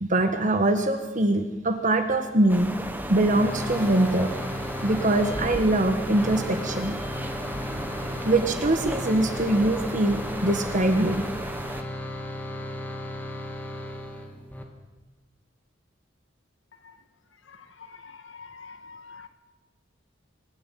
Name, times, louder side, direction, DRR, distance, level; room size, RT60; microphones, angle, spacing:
voice 1, 0.0-2.7 3.1-4.3 4.8-7.0 8.2-11.2, right 1 dB, 40° right, 7 dB, 1.4 m, -23 dB
sound 1, 2.5-11.8, right 1 dB, 10° right, 1.4 m, -34 dB
sound 2, 3.3-14.6, left 1 dB, 10° left, 2.3 m, -36 dB
voice 2, 17.9-19.3, left 4 dB, 75° left, 8 dB, 1.9 m, -45 dB
25.5 x 11.5 x 9.1 m, 1.3 s
head